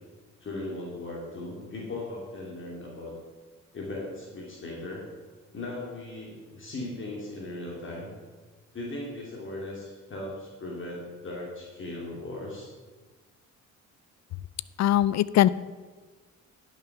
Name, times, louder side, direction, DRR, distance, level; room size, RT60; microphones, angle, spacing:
voice 1, 0.4-3.1 3.7-5.0 5.5-8.1 8.7-12.7, left 2 dB, 40° left, -3 dB, 2.6 m, -38 dB
voice 2, 14.8-15.5, left 12 dB, 65° left, 19 dB, 0.5 m, -21 dB
11.0 x 6.6 x 5.9 m, 1.3 s
cardioid pair, 90°, 30 cm